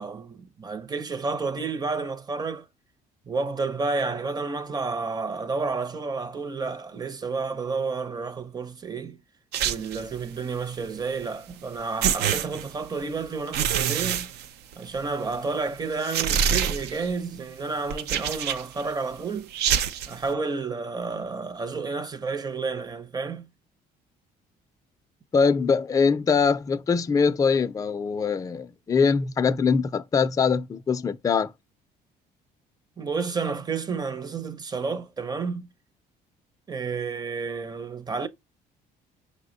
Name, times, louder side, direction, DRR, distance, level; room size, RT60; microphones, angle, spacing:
voice 1, 0.0-2.7 3.3-9.2 9.6-14.3 14.8-19.5 20.1-23.5 33.0-35.7 36.7-38.3, right 4 dB, 25° right, 0.6 m, -30 dB
sound 1, 9.5-10.2 11.5-11.6 12.0-13.0 13.5-15.0 15.3-15.4 16.0-17.1 17.9-18.8 19.5-20.2, right 8 dB, 75° right, 0.5 m, -26 dB
voice 2, 25.3-31.5, left 5 dB, 20° left, 0.4 m, -23 dB
5.6 x 2.1 x 3.8 m
cardioid pair, 110°, 17 cm